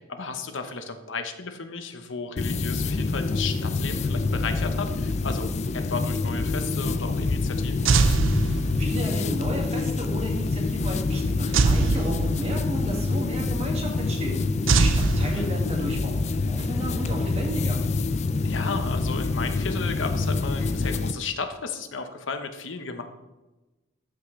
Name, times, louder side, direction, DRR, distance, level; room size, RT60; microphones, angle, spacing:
voice 1, 0.1-7.9 15.2-15.5 18.4-23.0, left 4 dB, 75° left, 7 dB, 1.0 m, -34 dB
sound 1, 2.4-21.1, left 3 dB, 35° left, 0.4 m, -26 dB
sound 2, 7.9-9.1 11.5-12.8 14.7-16.0, right 4 dB, 85° right, 0.5 m, -23 dB
voice 2, 8.7-14.4 14.8-17.8, equal, 35° right, 0 dB, 1.9 m, -33 dB
13.5 x 6.0 x 3.3 m, 1.1 s
head